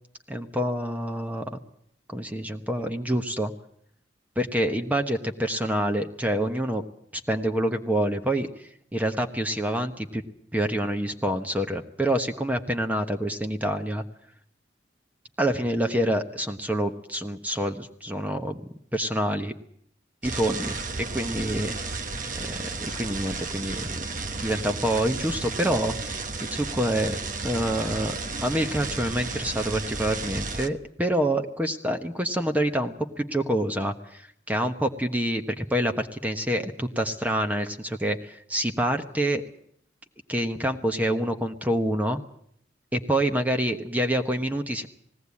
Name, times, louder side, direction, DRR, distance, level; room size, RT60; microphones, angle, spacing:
voice 1, 0.3-1.6 2.1-3.5 4.4-6.8 7.1-10.2 10.5-14.0 15.4-18.6 18.9-19.5 20.2-20.8 21.1-21.7 22.3-24.0 24.3-27.2 27.4-28.1 28.4-39.4 40.3-42.2 42.9-44.9, right 1 dB, 10° right, 6 dB, 1.2 m, -27 dB
sound 1, 20.2-30.7, right 3 dB, 45° right, 1.2 m, -33 dB
19.5 x 17.0 x 8.4 m, 0.68 s
head